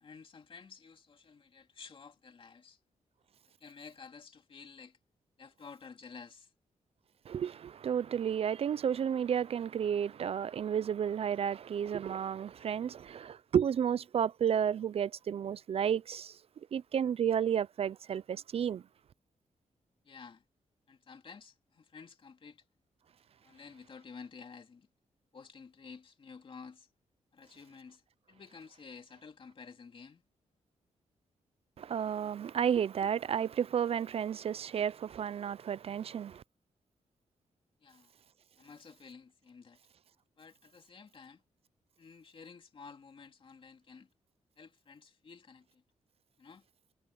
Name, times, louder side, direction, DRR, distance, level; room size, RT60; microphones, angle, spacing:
voice 1, 0.0-2.8 3.6-5.0 5.4-6.5 20.1-20.4 20.9-22.6 23.4-24.9 25.3-26.9 27.3-28.0 28.3-30.2 37.8-38.1 38.6-39.8 40.4-41.4 42.0-44.1 44.6-45.8 46.4-46.6, left 5 dB, 45° left, 2.4 m, -52 dB
voice 2, 7.3-16.4 16.7-18.8 31.8-36.4, right 8 dB, 55° right, 0.4 m, -32 dB
wide cardioid pair, 120°, 12 cm